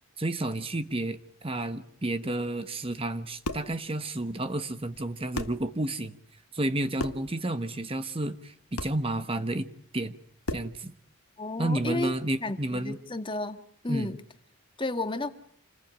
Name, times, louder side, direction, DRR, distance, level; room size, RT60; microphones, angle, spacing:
voice 1, 0.2-6.2 6.5-10.2 10.5-10.9 11.6-13.0 13.9-14.1, right 1 dB, 25° right, 10 dB, 1.1 m, -31 dB
sound 1, 3.4-3.8 4.9-5.0 5.3-5.7 7.0-7.3 8.8-9.0 10.4-10.8, left 2 dB, 80° left, 1.6 m, -34 dB
voice 2, 11.4-12.1 12.4-14.2 14.8-15.3, left 2 dB, 20° left, 8 dB, 1.8 m, -32 dB
28.0 x 20.5 x 9.0 m, 0.65 s
head